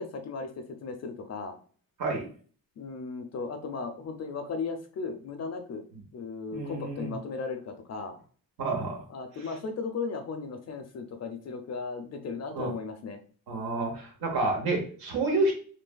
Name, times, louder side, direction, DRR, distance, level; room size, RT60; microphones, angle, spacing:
voice 1, 0.0-1.6 2.8-5.8 6.1-8.1 9.1-13.2, left 4 dB, 45° left, 6 dB, 0.4 m, -36 dB
voice 2, 6.5-7.1 8.6-9.0 12.5-12.7 13.5-15.5, right 2 dB, 90° right, 1 dB, 0.9 m, -29 dB
3.2 x 2.1 x 2.2 m, 0.43 s
cardioid pair, 95°, 36 cm